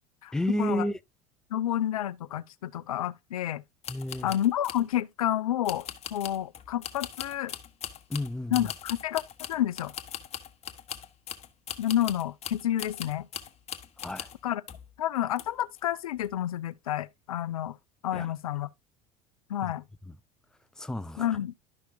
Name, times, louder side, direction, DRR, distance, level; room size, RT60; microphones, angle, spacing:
voice 1, 0.3-1.0 3.9-4.3 8.1-8.7 14.0-14.3 18.1-18.3 19.6-19.7 20.1-20.2 20.8-21.4, left 1 dB, 5° left, 0.5 m, -31 dB
voice 2, 1.5-3.6 4.2-7.5 8.5-9.2 9.5-9.9 11.8-13.3 14.4-14.6 15.0-17.8 18.0-18.7 19.5-19.8 21.2-21.5, left 12 dB, 70° left, 0.5 m, -29 dB
sound 1, 3.8-4.9 5.6-14.4 14.7-14.9 15.4-15.8 16.2-16.3, left 9 dB, 35° left, 1.1 m, -40 dB
11.5 x 5.7 x 2.6 m
figure-of-eight pair, 75°, 19 cm